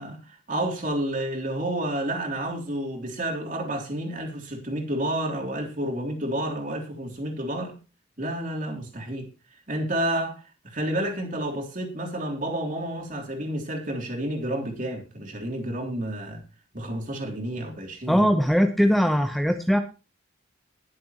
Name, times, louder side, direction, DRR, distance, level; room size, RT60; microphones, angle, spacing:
voice 1, 0.0-7.8 8.2-9.3 9.7-16.4 16.7-18.3, right 1 dB, 40° right, 3.4 m, -30 dB
voice 2, 18.1-19.8, equal, ahead, 0.8 m, -20 dB
20.5 x 7.6 x 3.0 m
head